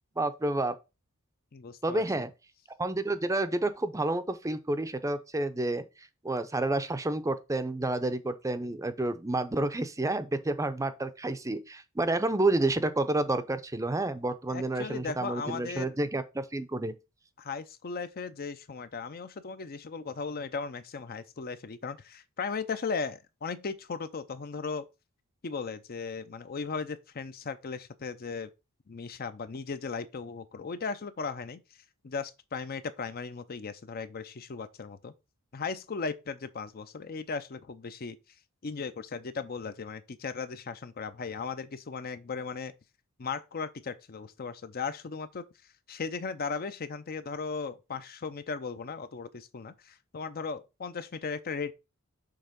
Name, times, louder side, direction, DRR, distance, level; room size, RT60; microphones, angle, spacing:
voice 1, 0.2-0.7 1.8-2.3 2.8-5.8 6.2-16.9, right 2 dB, 15° right, 0.6 m, -29 dB
voice 2, 1.5-2.2 14.5-16.0 17.4-24.9 25.4-28.5 28.9-31.6 32.0-35.1 35.5-38.2 38.6-42.7 43.2-45.4 45.9-51.7, left 5 dB, 45° left, 0.5 m, -37 dB
6.6 x 3.5 x 5.1 m
head